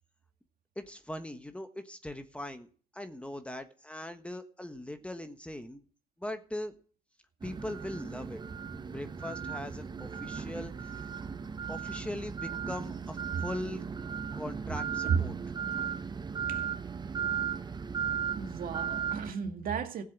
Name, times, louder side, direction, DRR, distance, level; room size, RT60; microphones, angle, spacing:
voice 1, 0.7-2.7 2.9-5.8 6.2-6.7 7.4-8.4 8.9-11.0 11.7-13.8 14.3-15.3, left 1 dB, 5° left, 1.4 m, -40 dB
sound 1, 7.4-19.3, right 7 dB, 25° right, 0.9 m, -36 dB
voice 2, 18.4-20.0, right 6 dB, 55° right, 2.0 m, -33 dB
15.0 x 7.8 x 7.3 m
supercardioid pair, 80°, 17 cm